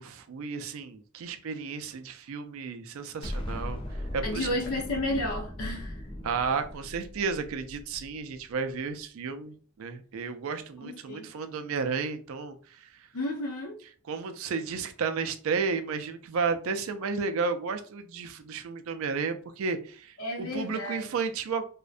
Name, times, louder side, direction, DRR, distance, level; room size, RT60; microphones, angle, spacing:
voice 1, 0.0-3.8 4.1-4.5 6.2-13.1 14.1-21.6, right 5 dB, 70° right, 0.4 m, -32 dB
Explosion, 3.2-8.4, left 1 dB, 25° left, 0.3 m, -38 dB
voice 2, 4.2-6.0 10.8-11.3 13.1-13.8 20.2-21.1, left 1 dB, 85° left, 0.7 m, -32 dB
2.5 x 2.1 x 2.4 m
head